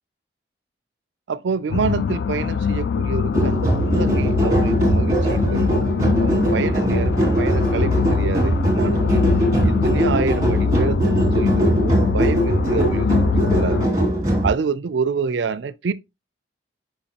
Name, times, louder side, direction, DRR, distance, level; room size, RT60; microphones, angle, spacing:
voice 1, 1.3-5.7 6.2-9.2 9.6-13.1 13.5-13.9 14.4-15.9, right 5 dB, 75° right, 0.4 m, -27 dB
sound 1, 1.7-13.9, left 6 dB, 65° left, 0.3 m, -23 dB
sound 2, 3.3-14.5, right 1 dB, 20° right, 2.4 m, -20 dB
7.0 x 5.2 x 2.9 m
head